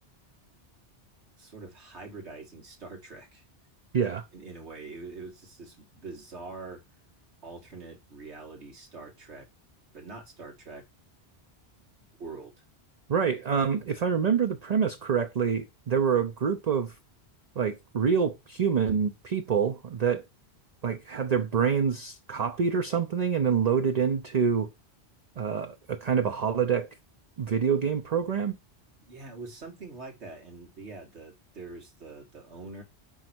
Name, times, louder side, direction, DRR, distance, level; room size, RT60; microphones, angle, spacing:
voice 1, 1.4-3.4 4.3-6.8 7.4-9.5 9.9-10.8 11.8-11.9 12.2-12.6 29.1-32.8, right 3 dB, 90° right, 2.3 m, -44 dB
voice 2, 3.9-4.2 13.1-17.0 17.6-20.2 20.8-24.7 25.4-26.9 27.4-28.6, right 6 dB, 45° right, 0.7 m, -26 dB
5.5 x 4.0 x 6.0 m
omnidirectional pair, 1.1 m